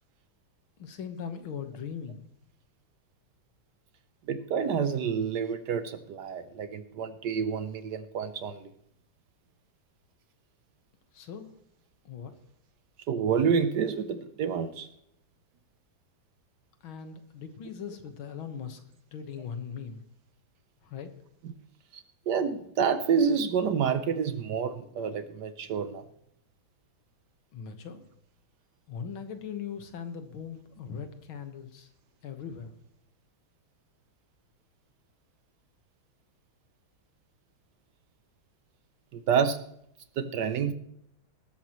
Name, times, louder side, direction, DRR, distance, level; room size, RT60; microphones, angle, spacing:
voice 1, 0.8-2.3 11.1-11.5 12.1-12.3 16.8-18.8 19.1-20.0 20.8-21.1 27.5-28.0 28.9-31.9 32.2-32.7, left 7 dB, 75° left, 8 dB, 2.1 m, -39 dB
voice 2, 4.3-8.7 13.1-14.9 21.4-21.5 21.9-26.0 39.1-39.6 40.2-40.7, right 6 dB, 65° right, 12 dB, 1.2 m, -28 dB
20.0 x 13.0 x 3.0 m, 0.74 s
omnidirectional pair, 2.3 m